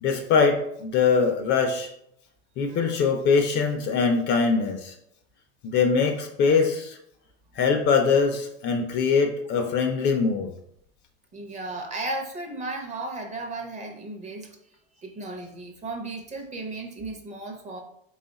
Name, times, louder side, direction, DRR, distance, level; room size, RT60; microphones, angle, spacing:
voice 1, 0.0-1.9 2.6-4.9 5.6-7.0 7.6-10.5, left 5 dB, 35° left, 5 dB, 0.4 m, -22 dB
voice 2, 11.3-14.5 15.0-17.8, right 2 dB, 25° right, 2 dB, 0.6 m, -35 dB
3.4 x 2.4 x 4.0 m, 0.75 s
supercardioid pair, 125°, 30 cm